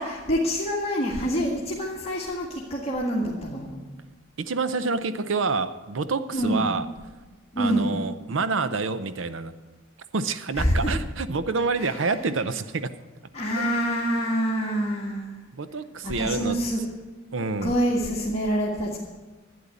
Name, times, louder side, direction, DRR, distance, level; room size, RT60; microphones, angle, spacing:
voice 1, 0.0-3.8 6.3-6.7 7.5-7.9 10.6-10.9 11.8-11.9 13.3-15.3 16.0-16.8 17.6-19.0, equal, 30° left, -5 dB, 1.7 m, -26 dB
voice 2, 4.4-6.9 7.6-9.5 10.1-12.9 13.6-13.7 15.5-16.6 17.3-17.8, right 4 dB, 65° right, 12 dB, 0.7 m, -27 dB
12.0 x 9.4 x 8.5 m, 1.3 s
head